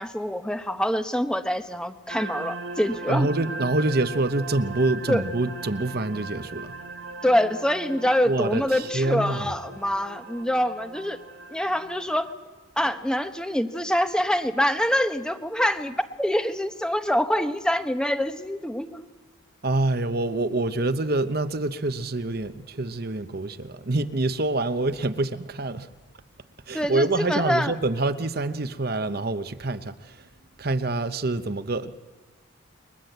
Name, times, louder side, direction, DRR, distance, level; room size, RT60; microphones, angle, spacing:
voice 1, 0.0-3.3 5.1-5.2 7.2-11.2 11.5-12.3 12.8-19.1 26.7-27.7, equal, 5° left, 1.1 m, -25 dB
sound 1, 2.1-12.3, right 3 dB, 75° right, 1.5 m, -39 dB
voice 2, 3.1-6.7 8.3-9.4 19.6-25.9 26.7-30.2 30.6-32.0, right 2 dB, 50° right, 1.0 m, -26 dB
29.5 x 22.5 x 8.1 m
head